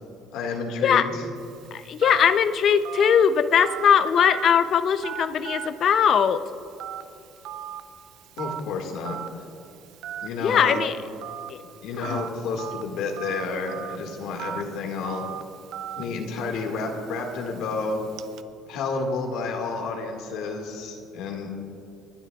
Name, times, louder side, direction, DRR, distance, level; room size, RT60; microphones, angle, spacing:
voice 1, 0.3-1.2 8.4-9.2 10.2-10.8 11.8-15.2 16.0-18.0 18.7-21.5, left 4 dB, 75° left, 1 dB, 2.0 m, -30 dB
Telephone, 1.4-18.4, right 9 dB, 70° right, 0.6 m, -39 dB
voice 2, 1.7-6.4 10.4-10.9 11.5-11.6 12.0-12.2, left 8 dB, 45° left, 11 dB, 0.6 m, -20 dB
29.5 x 12.0 x 2.4 m, 2.8 s
cardioid pair, 130°, 0 cm